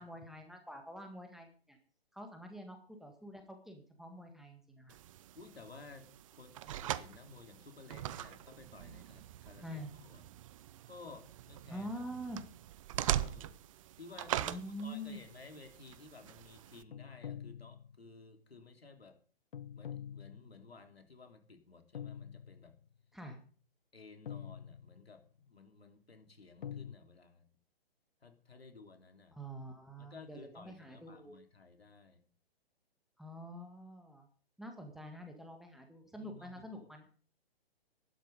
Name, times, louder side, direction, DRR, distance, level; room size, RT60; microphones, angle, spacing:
voice 1, 0.0-1.8 2.1-5.0 9.6-9.9 11.7-12.4 14.5-15.2 23.1-23.4 29.3-31.3 33.2-34.3 34.6-37.1, equal, ahead, 4 dB, 1.8 m, -46 dB
sound 1, 4.9-16.8, right 12 dB, 35° right, 0.7 m, -42 dB
voice 2, 5.3-10.2 10.9-11.9 13.0-13.6 14.0-19.2 19.7-22.7 23.9-27.4 28.2-29.4 30.0-32.2 36.2-36.8, left 3 dB, 80° left, 6 dB, 3.3 m, -55 dB
sound 2, 16.9-18.2 19.5-20.8 21.9-22.9 24.3-25.2 26.6-27.0, left 9 dB, 60° left, 0.8 m, -46 dB
14.0 x 12.0 x 5.4 m, 0.42 s
figure-of-eight pair, 130°, 30 cm